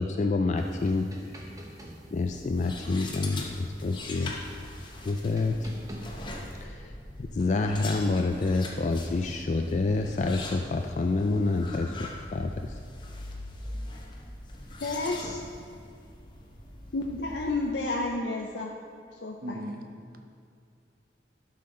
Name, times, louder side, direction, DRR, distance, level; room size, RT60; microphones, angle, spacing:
voice 1, 0.0-1.4 2.1-4.3 4.8-5.7 6.5-7.0 7.3-12.8, left 3 dB, 40° left, 4 dB, 0.3 m, -28 dB
sound 1, 0.6-6.6, right 1 dB, 20° right, 0.9 m, -48 dB
sound 2, 2.2-17.7, left 2 dB, 25° left, 0.9 m, -42 dB
voice 2, 14.8-15.4 16.9-18.7 19.2-19.6, left 2 dB, 80° left, 0 dB, 0.6 m, -31 dB
voice 3, 19.4-20.2, equal, 55° right, 4 dB, 0.8 m, -38 dB
12.0 x 5.8 x 3.8 m, 2.4 s
head